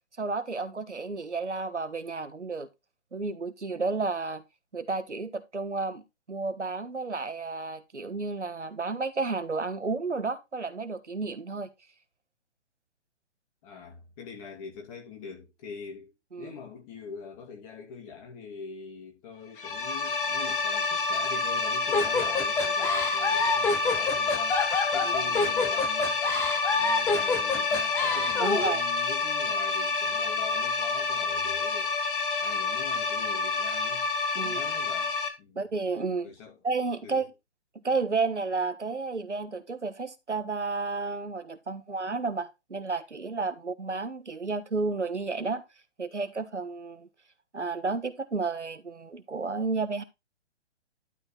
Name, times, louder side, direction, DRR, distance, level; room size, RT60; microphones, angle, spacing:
voice 1, 0.2-2.7 3.1-4.4 4.7-6.0 6.3-11.7 16.3-16.5 25.0-25.1 28.4-28.8 34.3-34.6 35.5-36.3 36.6-37.3 37.7-45.6 46.0-47.1 47.5-50.0, right 4 dB, 85° right, 1.4 m, -31 dB
voice 2, 13.6-16.1 16.4-24.6 24.9-26.2 26.7-32.0 32.4-34.1 34.4-35.6 36.2-36.6 37.0-37.3, left 5 dB, 30° left, 2.8 m, -43 dB
sound 1, 19.6-35.3, left 4 dB, 50° left, 2.0 m, -28 dB
sound 2, 21.9-28.7, left 4 dB, 5° left, 0.7 m, -27 dB
11.5 x 4.3 x 4.5 m
figure-of-eight pair, 130°, 35 cm